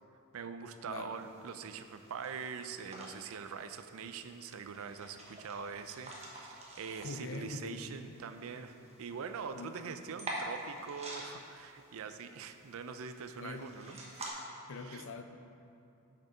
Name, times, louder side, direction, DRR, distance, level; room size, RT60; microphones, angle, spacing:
voice 1, 0.3-14.0 14.7-15.1, right 6 dB, 70° right, 9 dB, 0.5 m, -43 dB
sound 1, 1.1-14.3, right 1 dB, 30° right, 1.1 m, -48 dB
voice 2, 7.0-8.0 9.5-9.8 13.4-13.7 14.7-15.2, left 3 dB, 60° left, 7 dB, 0.6 m, -43 dB
6.6 x 6.5 x 5.0 m, 2.6 s
head